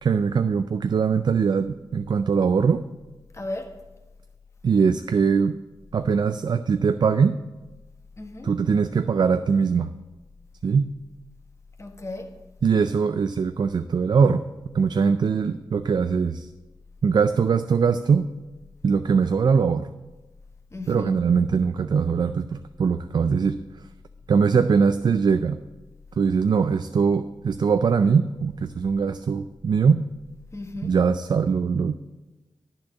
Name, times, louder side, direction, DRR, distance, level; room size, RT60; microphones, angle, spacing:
voice 1, 0.0-2.8 4.6-5.6 5.9-7.4 8.4-9.9 10.6-10.9 12.6-14.4 14.7-16.5 17.0-18.3 18.8-19.9 20.9-23.6 24.3-25.6 26.2-30.0 30.8-31.9, right 5 dB, 55° right, 0.4 m, -21 dB
voice 2, 3.3-3.8 8.2-8.6 11.8-12.4 20.7-21.2 30.5-31.0, left 2 dB, 35° left, 1.3 m, -35 dB
10.5 x 4.5 x 7.0 m
cardioid pair, 55°, 9 cm